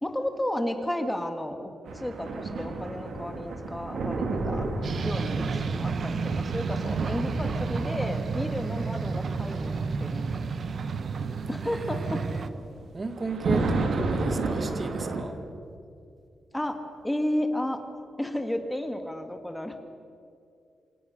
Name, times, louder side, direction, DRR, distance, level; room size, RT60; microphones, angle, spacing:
voice 1, 0.0-4.7 5.0-10.5 11.5-12.2 16.5-16.8 17.0-17.8 18.2-19.8, left 1 dB, 5° left, 6 dB, 1.7 m, -32 dB
sound 1, 1.9-15.2, right 3 dB, 65° right, 3.3 m, -33 dB
sound 2, 4.8-12.5, right 5 dB, 45° right, 1.0 m, -31 dB
voice 2, 5.5-6.3 11.6-12.5 12.9-15.4, right 3 dB, 25° right, 8 dB, 1.7 m, -36 dB
28.5 x 26.5 x 6.5 m, 2.5 s
wide cardioid pair, 175°, 0 cm